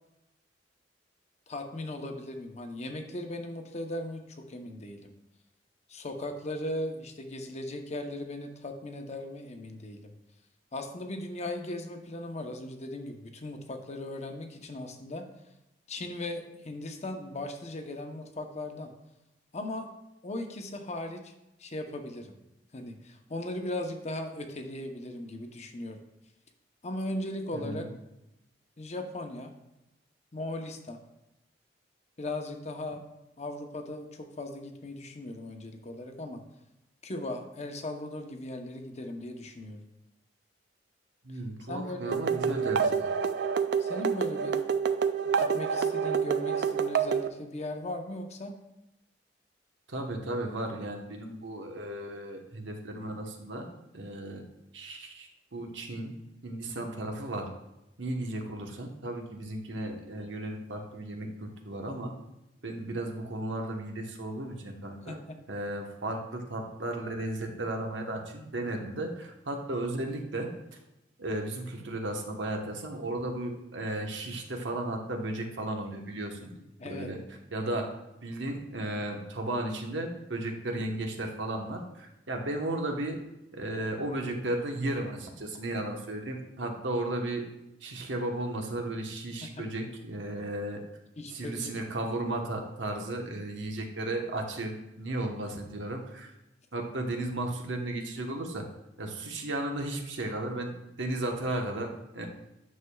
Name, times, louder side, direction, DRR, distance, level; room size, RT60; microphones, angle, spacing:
voice 1, 1.5-5.1 5.9-10.1 10.7-15.3 15.9-18.9 19.5-19.9 20.2-21.3 21.6-22.3 22.7-26.0 26.8-27.9 28.8-29.5 30.3-31.0 32.2-33.0 33.4-36.4 37.0-39.8 41.7-42.2 43.8-44.6 45.3-48.5 65.1-65.4 76.3-77.1 89.6-89.7 91.2-91.7, left 1 dB, 40° left, 5 dB, 0.8 m, -38 dB
voice 2, 27.5-27.9 41.2-43.1 49.9-53.7 53.9-54.4 54.7-56.1 56.4-57.5 58.0-62.1 62.6-65.2 65.5-70.5 71.2-76.6 76.8-77.2 77.5-77.9 78.2-83.2 83.5-87.4 87.8-90.8 91.3-96.3 96.7-98.6 99.0-100.7 101.0-101.9 102.1-102.3, right 1 dB, 85° right, 2 dB, 1.1 m, -34 dB
sound 1, 42.1-47.3, right 6 dB, 65° right, 0.4 m, -28 dB
9.6 x 6.6 x 2.3 m, 0.92 s
head